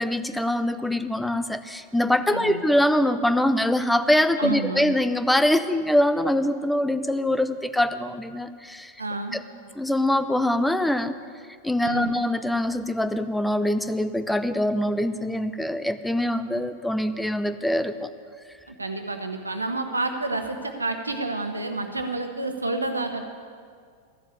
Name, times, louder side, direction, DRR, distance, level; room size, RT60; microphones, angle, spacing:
voice 1, 0.0-8.9 9.3-9.4 9.8-11.1 11.6-18.1, left 1 dB, 5° left, 11 dB, 0.6 m, -23 dB
voice 2, 2.3-2.7 4.4-4.9 9.0-9.4 11.8-12.2 18.7-23.3, right 2 dB, 80° right, 6 dB, 1.1 m, -29 dB
13.5 x 7.4 x 8.2 m, 2.1 s
figure-of-eight pair, 90°, 0 cm